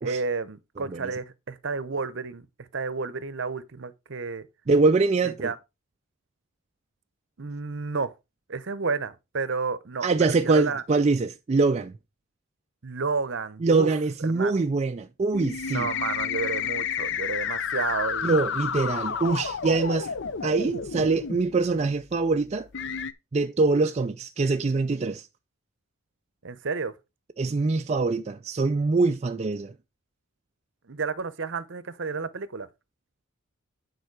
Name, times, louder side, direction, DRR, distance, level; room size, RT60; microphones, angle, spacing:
voice 1, 0.0-4.5 5.2-5.6 7.4-8.1 8.5-10.8 12.8-13.9 14.2-14.6 15.7-18.4 26.4-26.9 30.9-32.7, right 4 dB, 55° right, 0.8 m, -31 dB
voice 2, 4.7-5.3 10.0-11.9 13.6-15.9 18.2-20.1 20.4-22.7 23.3-25.3 27.4-29.7, right 3 dB, 30° right, 0.3 m, -24 dB
Mellotron spacey bleeps, 15.3-21.4 22.1-22.2 22.7-23.1, left 7 dB, 55° left, 0.6 m, -30 dB
9.2 x 4.5 x 4.6 m
head